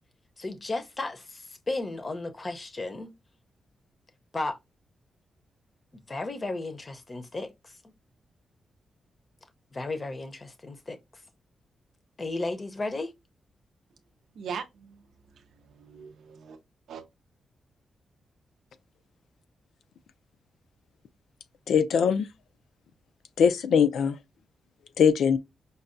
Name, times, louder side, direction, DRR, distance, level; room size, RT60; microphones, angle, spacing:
voice 1, 0.4-3.1 4.3-4.6 6.1-7.8 9.7-11.0 12.2-13.1, left 2 dB, 25° left, 0.6 m, -34 dB
voice 2, 14.3-16.6 16.9-17.0, right 6 dB, 90° right, 0.5 m, -41 dB
voice 3, 21.7-22.3 23.4-24.2 25.0-25.4, left 7 dB, 90° left, 0.4 m, -21 dB
5.3 x 2.2 x 2.5 m
wide cardioid pair, 145°, 0 cm